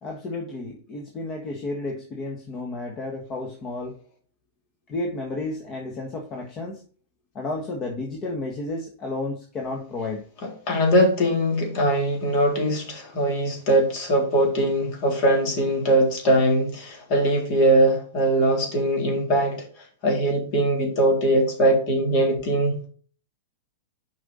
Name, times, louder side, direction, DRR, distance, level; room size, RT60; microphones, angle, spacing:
voice 1, 0.0-3.9 4.9-6.8 7.3-10.2, left 2 dB, 30° left, 1.6 m, -32 dB
voice 2, 10.7-22.8, right 1 dB, 50° left, 3.7 m, -21 dB
6.6 x 5.3 x 5.4 m
hypercardioid pair, 115°, 0 cm